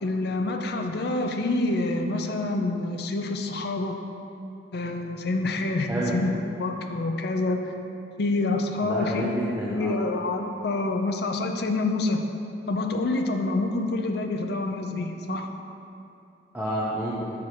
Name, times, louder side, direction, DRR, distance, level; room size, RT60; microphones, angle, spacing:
voice 1, 0.0-4.0 4.7-7.7 8.2-9.3 9.7-12.2 12.7-15.5, left 2 dB, 60° left, 4 dB, 0.5 m, -27 dB
voice 2, 8.8-10.0 16.5-17.3, right 1 dB, 10° right, -7 dB, 0.8 m, -29 dB
6.2 x 5.0 x 5.7 m, 2.7 s
head